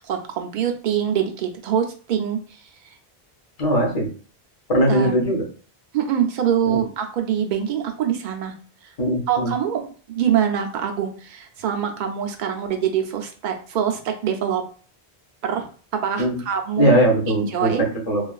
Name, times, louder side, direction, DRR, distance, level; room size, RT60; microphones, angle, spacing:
voice 1, 0.0-2.9 4.9-5.1 5.9-8.5 8.8-8.9 9.3-14.6 15.4-15.6 15.9-17.0 17.5-17.8, right 9 dB, 55° right, 4 dB, 0.6 m, -24 dB
voice 2, 3.6-4.1 4.7-5.4 6.7-6.8 9.0-9.5 16.2-16.4 16.8-18.2, right 1 dB, 40° left, 0 dB, 0.9 m, -20 dB
3.1 x 2.4 x 2.3 m, 0.39 s
omnidirectional pair, 1.0 m